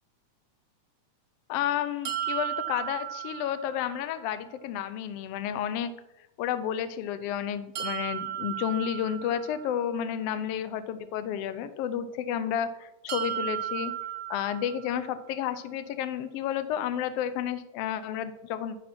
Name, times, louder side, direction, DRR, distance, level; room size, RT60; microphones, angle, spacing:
voice 1, 1.5-5.9 6.4-13.9 14.3-18.8, left 9 dB, 90° left, 12 dB, 1.3 m, -31 dB
sound 1, 2.0-4.0 7.7-9.8 13.1-15.1, right 11 dB, 70° right, 1.4 m, -35 dB
11.5 x 5.1 x 5.9 m, 0.93 s
omnidirectional pair, 3.4 m